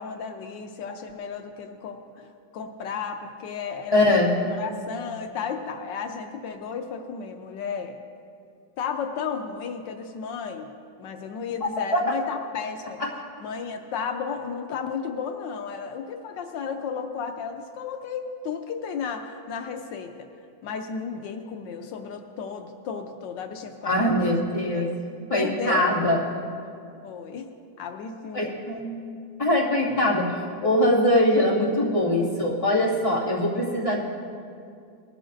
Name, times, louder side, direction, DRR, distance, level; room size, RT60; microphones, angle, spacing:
voice 1, 0.0-4.2 4.6-8.0 8.8-10.7 11.0-13.0 13.4-20.3 20.6-24.3 24.7-24.9 25.3-26.0 27.0-27.5 27.8-28.6, left 6 dB, 80° left, 5 dB, 1.4 m, -33 dB
voice 2, 3.9-4.3 11.9-12.1 13.0-13.1 23.8-24.9 25.3-26.2 28.3-28.9 29.4-34.0, left 1 dB, 20° left, -6 dB, 2.2 m, -22 dB
20.0 x 13.0 x 2.6 m, 2.4 s
omnidirectional pair, 2.0 m